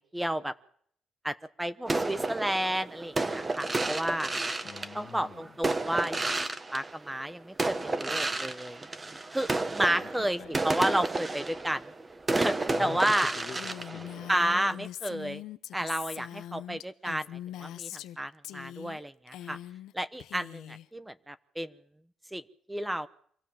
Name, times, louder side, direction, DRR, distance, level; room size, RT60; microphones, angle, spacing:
voice 1, 0.1-0.5 1.2-4.3 4.9-6.2 6.7-8.8 9.3-11.9 12.3-13.3 14.3-15.4 15.7-19.6 19.9-21.7 22.3-22.4 22.7-23.1, right 1 dB, 10° right, 14 dB, 1.0 m, -31 dB
sound 1, 1.9-7.3 7.6-14.8, right 2 dB, 25° right, 1.5 m, -32 dB
voice 2, 4.6-5.4 9.8-10.6 12.7-13.0 13.3-14.3, left 7 dB, 55° left, 10 dB, 1.7 m, -46 dB
Female speech woman speaking, 13.5-18.2 18.4-19.0 19.3-19.9 20.2-20.9, left 12 dB, 85° left, 0.9 m, -42 dB
24.5 x 16.5 x 7.5 m, 0.65 s
cardioid pair, 90°, 0 cm